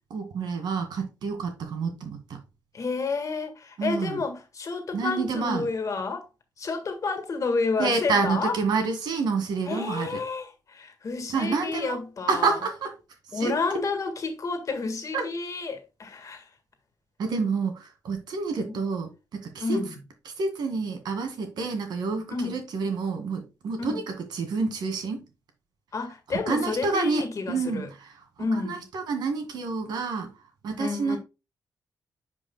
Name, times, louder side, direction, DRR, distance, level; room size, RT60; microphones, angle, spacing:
voice 1, 0.1-2.4 3.8-4.2 4.9-5.7 7.8-10.2 11.3-12.0 12.3-12.9 13.3-13.5 15.1-15.3 17.2-19.8 20.4-25.2 26.5-28.1 28.4-30.3 30.6-31.2, right 4 dB, 90° right, 2.1 m, -28 dB
voice 2, 2.7-6.3 6.6-8.6 9.7-12.6 13.3-16.5 18.7-18.8 19.6-20.0 22.3-22.6 23.8-24.0 25.9-27.9 28.4-28.8 30.8-31.2, left 4 dB, 50° left, 1.7 m, -30 dB
10.0 x 5.0 x 2.3 m
wide cardioid pair, 120°, 7 cm